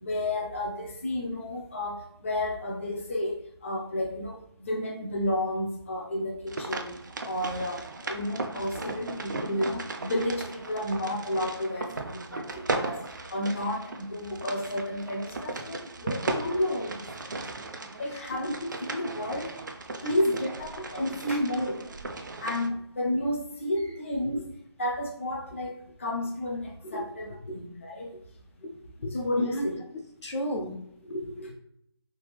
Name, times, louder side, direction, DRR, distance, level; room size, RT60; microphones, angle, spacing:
voice 1, 0.0-13.0 13.3-17.4 18.0-19.5 20.0-21.8 22.4-24.4 24.8-25.7 26.0-28.1 29.1-29.8, left 1 dB, 30° left, -1 dB, 0.4 m, -31 dB
sound 1, 6.5-22.7, right 3 dB, 45° right, 0.4 m, -37 dB
voice 2, 29.0-29.7 30.2-30.7 31.0-31.5, equal, 85° left, 1 dB, 1.0 m, -34 dB
3.3 x 3.1 x 3.4 m, 0.74 s
figure-of-eight pair, 170°, 14 cm